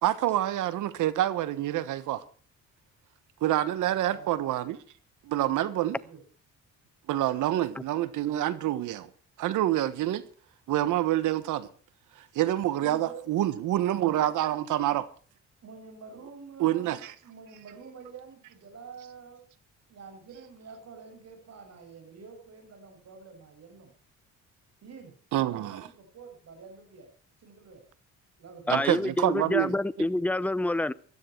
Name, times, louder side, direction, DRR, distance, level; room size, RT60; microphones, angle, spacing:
voice 1, 0.0-2.2 3.4-4.8 5.2-6.0 7.1-9.1 9.4-10.2 10.7-11.7 12.3-15.1 16.6-17.1 25.3-25.8 28.7-29.7, right 13 dB, 85° right, 1.4 m, -27 dB
voice 2, 4.1-4.4 5.8-6.2 12.6-13.3 15.6-19.4 19.9-23.9 24.8-25.1 25.5-27.1 27.4-27.8 28.4-28.8, right 5 dB, 60° right, 7.0 m, -47 dB
voice 3, 28.7-30.9, left 2 dB, 5° left, 0.7 m, -27 dB
17.5 x 13.0 x 4.6 m
cardioid pair, 90°, 30 cm